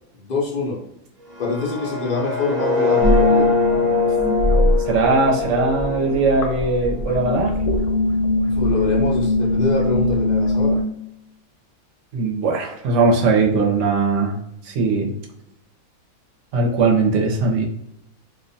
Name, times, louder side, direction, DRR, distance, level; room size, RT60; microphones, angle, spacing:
voice 1, 0.1-0.8 1.4-3.5 8.4-10.8, left 3 dB, 80° left, -3 dB, 0.3 m, -25 dB
sound 1, 1.2-7.2, left 4 dB, 35° right, 0.7 m, -23 dB
sound 2, 3.0-5.3 5.6-10.8, left 2 dB, 65° left, 0.8 m, -20 dB
voice 2, 4.9-7.5 12.1-14.4 14.6-15.1 16.5-17.6, right 3 dB, 65° right, 0 dB, 0.9 m, -19 dB
2.5 x 2.1 x 2.6 m, 0.80 s
omnidirectional pair, 1.5 m